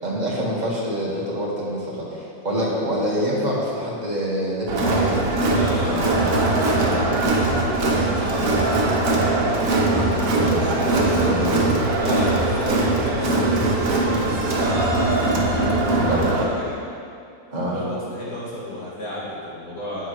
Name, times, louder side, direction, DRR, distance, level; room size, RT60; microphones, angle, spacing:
voice 1, 0.0-5.2 5.8-6.3 8.3-8.6 10.4-11.8 16.1-16.2 17.5-17.8, equal, 30° right, -6 dB, 1.7 m, -26 dB
Crowd, 4.7-16.4, right 2 dB, 65° right, 1.5 m, -21 dB
voice 2, 5.5-7.4 9.0-9.5 12.0-16.8 17.5-20.1, left 1 dB, 85° left, -8 dB, 2.8 m, -32 dB
10.0 x 8.0 x 3.1 m, 2.5 s
omnidirectional pair, 1.6 m